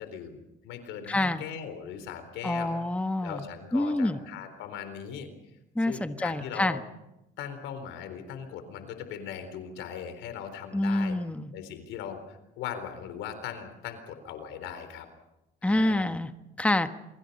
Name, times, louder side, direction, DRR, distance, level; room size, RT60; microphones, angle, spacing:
voice 1, 0.0-2.8 3.2-5.3 5.9-6.8 7.4-11.2 11.5-15.1 15.6-16.1, left 8 dB, 85° left, 9 dB, 4.0 m, -39 dB
voice 2, 1.1-1.4 2.4-3.4 3.7-4.2 5.7-6.8 10.7-11.5 15.6-16.3 16.6-16.9, left 1 dB, 5° left, 8 dB, 1.3 m, -27 dB
28.5 x 24.0 x 5.5 m, 0.91 s
cardioid pair, 85°, 19 cm